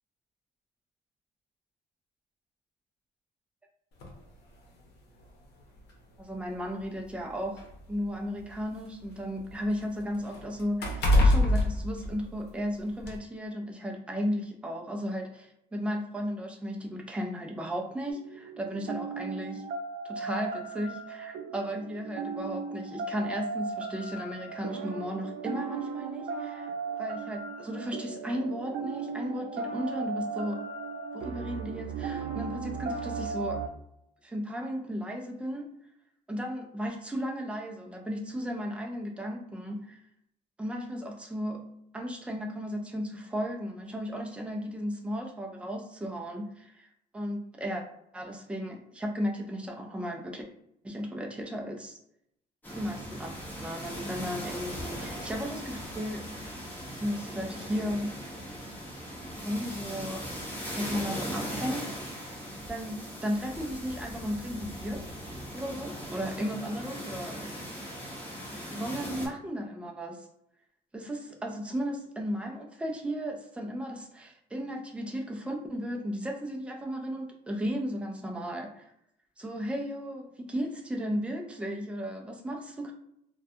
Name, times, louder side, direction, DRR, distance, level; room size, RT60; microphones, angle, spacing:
sound 1, 4.0-4.2 5.2-5.3 5.8-5.9 6.8-8.8 9.2-12.6 13.0-13.2, left 1 dB, 75° left, 0.8 m, -26 dB
voice 1, 6.2-7.6 7.9-19.6 20.0-26.7 27.0-30.6 31.1-33.6 34.2-35.7 36.3-40.0 40.6-41.6 41.9-46.9 47.1-47.8 48.1-50.4 50.8-52.0 52.7-56.2 57.0-58.1 59.4-60.2 60.7-61.9 62.7-65.1 65.5-67.7 68.7-70.3 70.9-78.9 79.4-82.9, equal, 5° right, 1 dB, 0.4 m, -35 dB
sound 2, 18.1-33.7, right 5 dB, 80° right, 0.4 m, -37 dB
sound 3, 52.6-69.3, equal, 10° left, 0.9 m, -39 dB
2.2 x 2.2 x 2.7 m, 0.76 s
cardioid pair, 110°, 17 cm